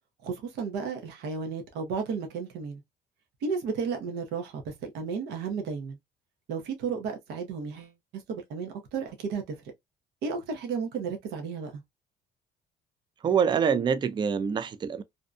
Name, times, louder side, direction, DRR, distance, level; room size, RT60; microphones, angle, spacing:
voice 1, 0.2-2.8 3.4-6.0 6.5-9.6 10.2-11.8, right 5 dB, 80° right, 0.8 m, -33 dB
voice 2, 13.2-15.0, right 7 dB, 25° right, 0.3 m, -25 dB
2.6 x 2.2 x 2.4 m
cardioid pair, 110°, 17 cm